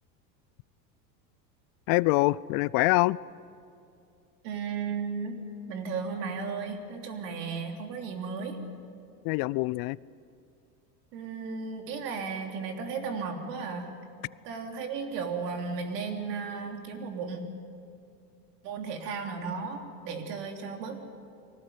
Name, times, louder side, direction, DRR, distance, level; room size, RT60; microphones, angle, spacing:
voice 1, 1.9-3.2 9.2-10.0, left 22 dB, 50° left, 22 dB, 0.5 m, -24 dB
voice 2, 4.4-5.4 5.7-8.6 11.1-13.9 14.4-17.4 18.6-21.0, right 5 dB, 75° right, 4 dB, 3.5 m, -35 dB
23.5 x 18.5 x 9.5 m, 2.5 s
hypercardioid pair, 95°, 49 cm